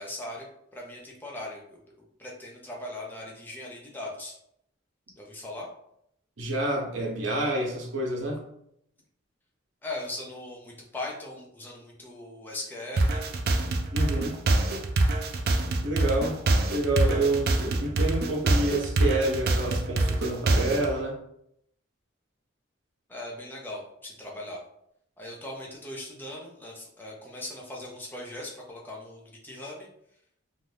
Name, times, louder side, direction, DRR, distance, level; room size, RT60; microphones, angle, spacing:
voice 1, 0.0-1.8 2.2-4.4 5.2-5.7 9.8-13.2 23.1-24.6 25.2-29.9, left 1 dB, 10° left, -2 dB, 0.5 m, -39 dB
voice 2, 6.4-8.4 13.9-14.4 15.8-16.4 16.7-21.2, right 2 dB, 65° right, -1 dB, 0.7 m, -28 dB
sound 1, 13.0-20.9, right 2 dB, 50° right, 0.3 m, -25 dB
2.5 x 2.3 x 3.2 m, 0.75 s
head